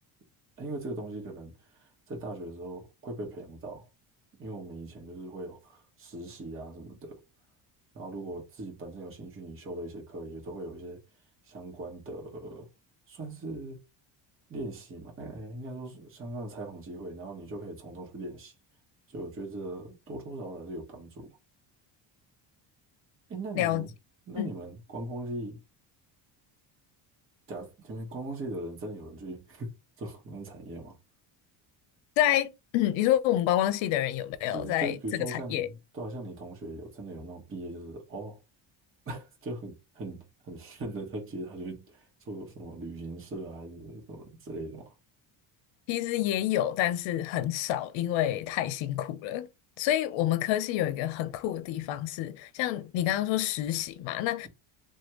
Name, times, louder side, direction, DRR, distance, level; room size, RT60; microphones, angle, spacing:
voice 1, 0.6-3.9 4.4-7.2 7.9-11.0 11.4-12.7 13.1-13.8 14.5-18.5 19.1-21.3 23.3-23.9 24.3-25.6 27.5-31.0 34.5-38.4 39.1-44.9, right 2 dB, 25° right, 1.1 m, -40 dB
voice 2, 23.6-23.9 24.4-24.5 32.2-35.7 45.9-49.5 49.8-54.5, left 12 dB, 75° left, 0.6 m, -28 dB
3.2 x 2.2 x 2.9 m
cardioid pair, 115°, 47 cm